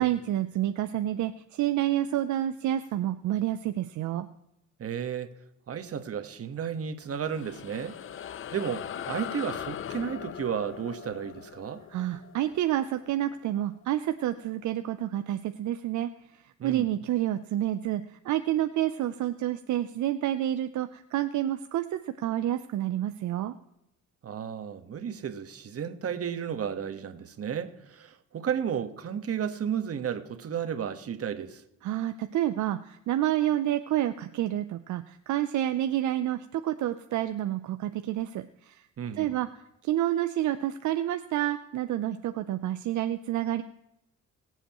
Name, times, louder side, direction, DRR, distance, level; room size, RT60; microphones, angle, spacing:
voice 1, 0.0-4.3 11.9-16.1 16.6-23.5 31.8-38.8 39.1-39.5 39.8-43.6, right 12 dB, 70° right, 0.6 m, -29 dB
voice 2, 4.8-5.3 5.7-11.8 16.6-16.9 24.2-31.6 39.0-39.3, right 8 dB, 50° right, 1.4 m, -33 dB
sound 1, 7.0-13.8, left 9 dB, 45° left, 0.5 m, -40 dB
22.0 x 7.9 x 3.0 m
cardioid pair, 90°, 30 cm